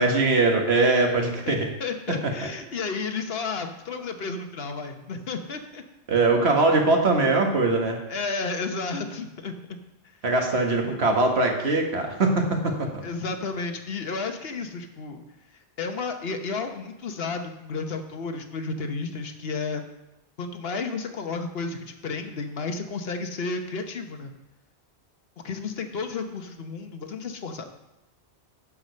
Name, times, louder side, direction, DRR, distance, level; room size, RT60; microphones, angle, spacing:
voice 1, 0.0-1.7 2.2-2.5 6.1-8.0 10.2-13.0, right 3 dB, 70° right, 2 dB, 1.6 m, -22 dB
voice 2, 1.5-5.8 8.1-9.6 13.0-15.2 15.8-19.9 20.4-24.3 25.4-27.7, left 4 dB, 65° left, 6 dB, 1.2 m, -32 dB
11.0 x 4.9 x 6.5 m, 0.93 s
omnidirectional pair, 1.1 m